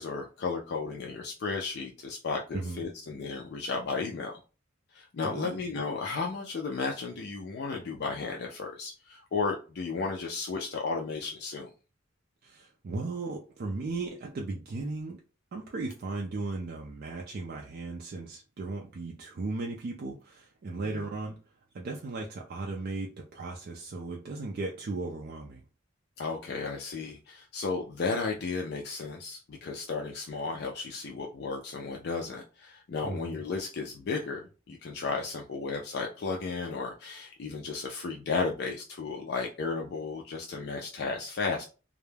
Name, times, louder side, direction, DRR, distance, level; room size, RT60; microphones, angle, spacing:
voice 1, 0.0-4.4 4.9-11.7 20.8-21.0 26.2-41.6, left 4 dB, 55° left, 0.4 m, -34 dB
voice 2, 5.2-5.6 12.4-15.2 15.5-21.4 21.7-25.6 33.0-33.4, right 3 dB, 50° right, 0.4 m, -36 dB
2.2 x 2.0 x 3.2 m
head